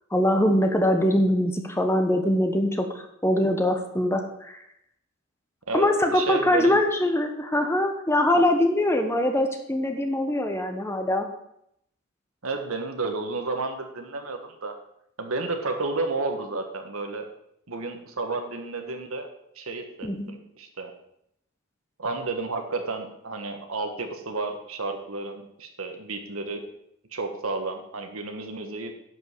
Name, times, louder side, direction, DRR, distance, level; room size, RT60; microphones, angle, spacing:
voice 1, 0.1-4.6 5.7-11.3 20.0-20.3, left 1 dB, 15° left, 5 dB, 1.1 m, -23 dB
voice 2, 5.7-6.8 8.4-8.5 12.4-14.7 15.2-17.3 17.7-19.3 19.5-20.9 22.0-26.6 27.1-28.9, right 3 dB, 85° right, 5 dB, 1.5 m, -31 dB
10.5 x 5.5 x 6.7 m, 0.74 s
head